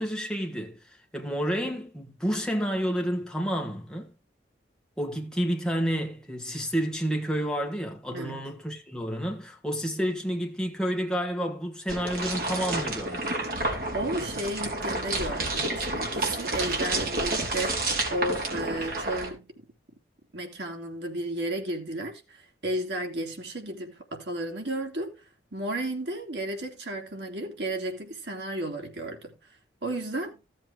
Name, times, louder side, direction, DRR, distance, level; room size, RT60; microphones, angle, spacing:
voice 1, 0.0-4.1 5.0-13.4, equal, 5° left, 2.0 m, -30 dB
voice 2, 8.1-8.5 13.9-19.7 20.3-25.2 25.5-29.4 29.8-30.4, right 1 dB, 75° right, 3.1 m, -33 dB
sound 1, 11.9-19.3, right 2 dB, 55° right, 3.9 m, -30 dB
16.0 x 7.7 x 3.5 m
head